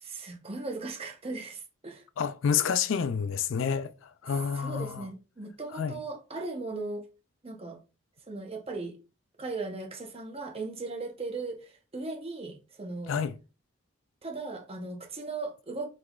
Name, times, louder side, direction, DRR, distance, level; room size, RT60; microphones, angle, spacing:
voice 1, 0.0-2.0 4.6-7.0 7.4-7.8 8.3-9.0 9.4-13.2 14.2-15.9, right 3 dB, 30° right, 0.9 m, -37 dB
voice 2, 2.2-3.9 4.2-5.1 5.7-6.0 13.1-13.3, left 7 dB, 65° left, 0.4 m, -28 dB
4.9 x 3.6 x 2.4 m
head